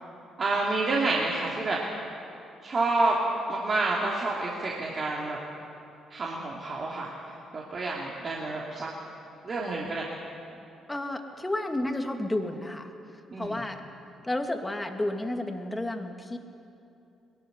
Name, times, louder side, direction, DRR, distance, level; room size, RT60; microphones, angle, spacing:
voice 1, 0.4-1.8 2.6-3.2 3.5-5.4 6.1-7.1 7.5-8.9 9.4-10.1 13.3-13.6, right 3 dB, 45° right, -3 dB, 3.1 m, -28 dB
voice 2, 10.9-12.9 13.4-13.8 14.2-16.4, left 1 dB, 15° left, 4 dB, 2.5 m, -31 dB
21.5 x 13.5 x 9.8 m, 2.7 s
hypercardioid pair, 45°, 0 cm